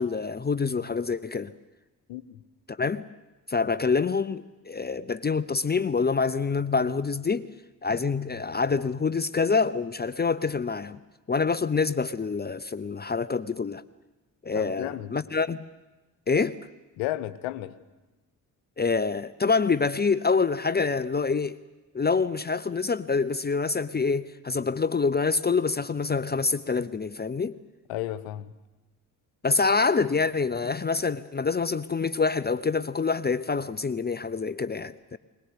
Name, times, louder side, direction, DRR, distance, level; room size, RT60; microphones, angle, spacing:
voice 1, 0.0-1.5 2.7-3.0 3.5-7.5 7.8-11.0 11.3-13.8 14.4-15.6 16.3-16.6 18.8-21.6 21.9-27.6 29.4-35.2, left 4 dB, 20° left, 0.7 m, -26 dB
voice 2, 14.5-15.1 17.0-17.7 27.9-28.5, left 14 dB, 70° left, 1.1 m, -33 dB
21.0 x 20.5 x 8.1 m
figure-of-eight pair, 40°, 49 cm